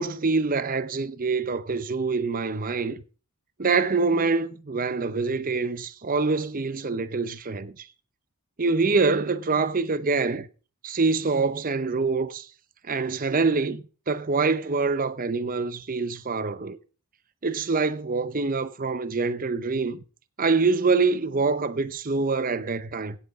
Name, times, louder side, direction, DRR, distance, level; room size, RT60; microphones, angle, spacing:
voice 1, 0.0-3.0 3.6-7.9 8.6-10.5 10.8-12.5 12.8-16.8 17.4-20.0 20.4-23.2, right 4 dB, 40° right, 0.7 m, -25 dB
16.5 x 7.4 x 3.6 m
head